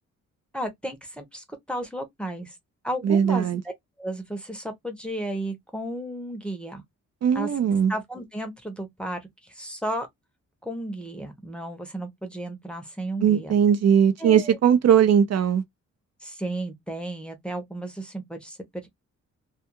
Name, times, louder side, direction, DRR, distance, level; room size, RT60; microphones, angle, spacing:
voice 1, 0.5-2.5 2.8-3.5 4.0-6.8 7.3-7.5 7.9-10.1 10.6-13.5 14.2-14.6 16.2-18.9, right 1 dB, 5° left, 0.7 m, -33 dB
voice 2, 3.0-3.6 7.2-7.9 13.2-15.6, right 8 dB, 60° right, 0.5 m, -19 dB
2.3 x 2.2 x 2.8 m
cardioid pair, 125°, 29 cm